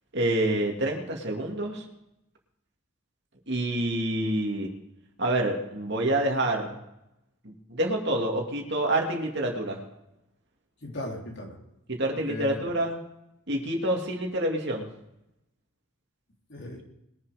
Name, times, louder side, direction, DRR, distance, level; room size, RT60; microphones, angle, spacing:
voice 1, 0.1-1.8 3.5-4.7 5.2-6.7 7.4-9.8 11.9-13.0 13.5-14.9, right 1 dB, 50° right, 1 dB, 2.4 m, -27 dB
voice 2, 10.8-11.6 12.1-12.7 16.5-16.8, left 1 dB, 50° left, 0 dB, 3.2 m, -37 dB
21.5 x 7.4 x 5.0 m, 0.87 s
head